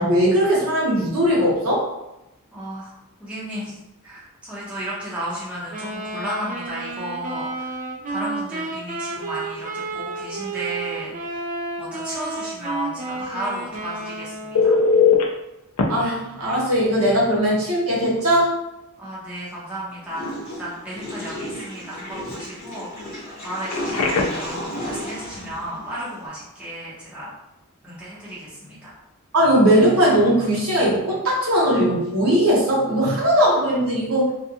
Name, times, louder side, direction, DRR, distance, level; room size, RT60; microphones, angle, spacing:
voice 1, 0.0-1.8 15.9-18.6 29.3-34.3, equal, 70° right, -5 dB, 1.0 m, -19 dB
voice 2, 2.5-2.9 3.2-7.8 8.1-11.4 11.8-14.8 19.0-27.3 27.8-29.0, equal, 5° right, -9 dB, 0.7 m, -34 dB
Wind instrument woodwind instrument, 5.7-14.8, right 3 dB, 35° right, 0.4 m, -31 dB
Telephone, 14.5-15.2 15.8-15.9 17.6-17.8 18.2-18.4 23.6-24.5 31.6-31.8, left 5 dB, 80° left, 0.4 m, -19 dB
Water / Toilet flush, 20.1-26.3, equal, 40° left, 0.9 m, -33 dB
2.4 x 2.2 x 2.7 m, 0.91 s
head